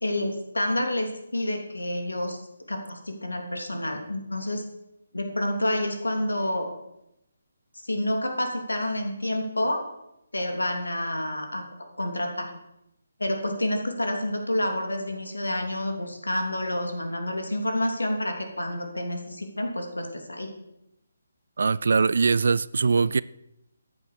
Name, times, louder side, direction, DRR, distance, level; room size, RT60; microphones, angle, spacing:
voice 1, 0.0-2.4 2.7-4.6 5.1-6.7 7.8-9.9 10.3-11.6 12.0-12.5 13.2-20.5, left 1 dB, 75° left, 3.1 m, -28 dB
voice 2, 21.6-23.2, right 4 dB, 55° right, 0.5 m, -22 dB
14.0 x 9.1 x 6.7 m
figure-of-eight pair, 145°, 0 cm